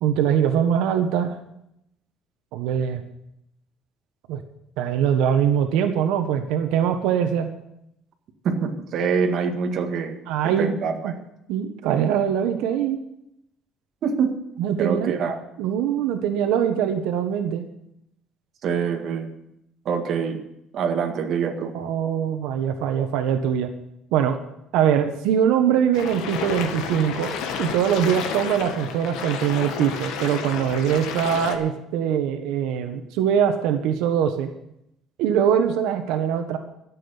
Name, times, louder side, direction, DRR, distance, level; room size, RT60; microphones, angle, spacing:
voice 1, 0.0-1.4 2.5-3.0 4.3-4.4 4.8-7.5 10.3-10.7 11.0-11.1 11.5-13.0 14.6-15.2 15.6-17.7 21.7-23.7 24.1-24.4 24.7-34.5 35.2-36.6, right 8 dB, 85° right, 6 dB, 1.3 m, -22 dB
voice 2, 8.4-10.2 10.4-11.2 14.0-14.4 14.8-15.4 18.6-19.3 19.9-20.4 20.7-21.7, right 6 dB, 45° right, 3 dB, 1.8 m, -25 dB
sound 1, 25.9-31.6, left 7 dB, 75° left, 1.7 m, -31 dB
13.0 x 7.7 x 9.9 m, 0.81 s
cardioid pair, 170°, 0 cm